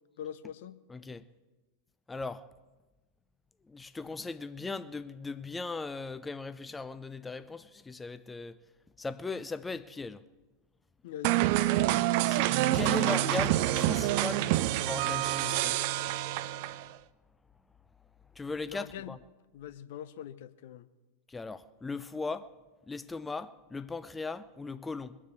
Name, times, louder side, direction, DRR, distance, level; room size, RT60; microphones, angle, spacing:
voice 1, 0.2-0.8 11.0-11.5 18.7-19.1 19.5-20.9, left 10 dB, 55° left, 0.7 m, -43 dB
voice 2, 0.9-1.3 2.1-2.4 3.7-8.6 9.0-10.2 12.2-14.5 14.8-15.8 18.3-19.2 21.3-22.5 22.9-25.2, left 3 dB, 10° left, 0.5 m, -38 dB
sound 1, 11.2-16.9, right 14 dB, 45° right, 0.5 m, -27 dB
21.5 x 7.4 x 8.2 m
figure-of-eight pair, 90°, 0 cm